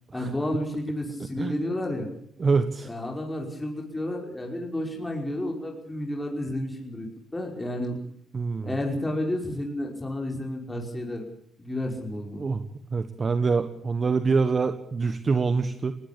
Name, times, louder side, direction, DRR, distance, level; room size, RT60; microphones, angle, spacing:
voice 1, 0.1-2.1 2.8-8.0 8.6-11.3 11.6-12.4, left 1 dB, 15° left, 1 dB, 5.5 m, -31 dB
voice 2, 2.4-2.9 8.3-8.7 12.4-12.6 12.9-15.9, right 4 dB, 35° right, 10 dB, 1.4 m, -25 dB
20.0 x 19.0 x 8.5 m, 0.68 s
cardioid pair, 90°, 0 cm